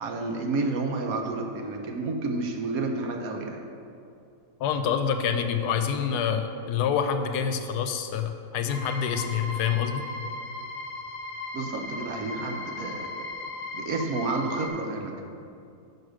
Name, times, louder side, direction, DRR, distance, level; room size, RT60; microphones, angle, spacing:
voice 1, 0.0-3.6 11.5-13.1 13.7-15.2, right 3 dB, 70° right, 3 dB, 1.1 m, -30 dB
voice 2, 4.6-10.0, left 7 dB, 80° left, 7 dB, 1.1 m, -27 dB
sound 1, 8.7-14.7, left 2 dB, 60° left, 0.8 m, -37 dB
6.4 x 4.7 x 6.2 m, 2.6 s
omnidirectional pair, 1.7 m